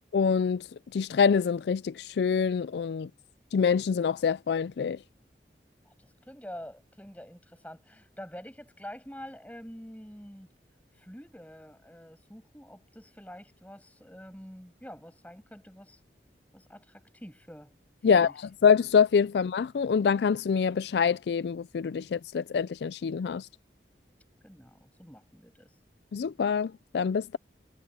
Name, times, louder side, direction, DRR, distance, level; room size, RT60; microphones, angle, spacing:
voice 1, 0.1-0.7 0.9-3.1 3.5-5.0 18.0-18.3 18.6-23.5 26.1-27.4, left 6 dB, 75° left, 0.4 m, -25 dB
voice 2, 5.9-10.5 11.0-16.0 16.5-17.8 18.1-18.3 24.4-25.7, equal, 10° left, 7.3 m, -47 dB
head